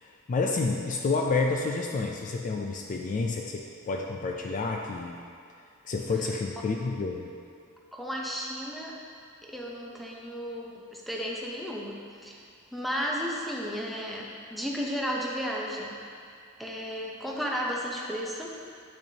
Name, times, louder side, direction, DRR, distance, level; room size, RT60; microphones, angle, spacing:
voice 1, 0.0-5.2 5.8-7.3, left 3 dB, 35° left, 1 dB, 0.3 m, -29 dB
voice 2, 7.9-8.9 9.4-12.4 12.7-16.0 16.6-18.5, equal, ahead, -2 dB, 0.7 m, -33 dB
8.6 x 6.4 x 2.8 m, 2.3 s
head